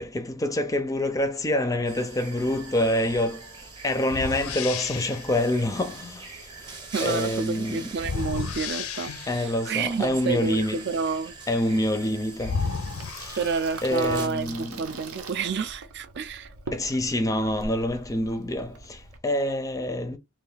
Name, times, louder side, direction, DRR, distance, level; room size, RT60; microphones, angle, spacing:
voice 1, 0.0-6.7 7.0-7.9 9.3-10.9 11.5-12.6 13.1-13.4 13.8-14.9 16.7-20.2, left 1 dB, 15° left, 0.5 m, -27 dB
sound 1, 1.9-14.3, right 3 dB, 20° right, 0.8 m, -43 dB
sound 2, 3.1-3.3 4.1-5.3 8.0-9.6 11.8-11.9 12.4-14.0, left 5 dB, 80° left, 0.5 m, -32 dB
voice 2, 6.9-11.3 13.4-16.5, right 5 dB, 55° right, 0.5 m, -29 dB
Water tap faucet / Sink (filling or washing), 12.7-19.2, right 3 dB, 90° right, 0.7 m, -42 dB
3.3 x 2.4 x 3.7 m
head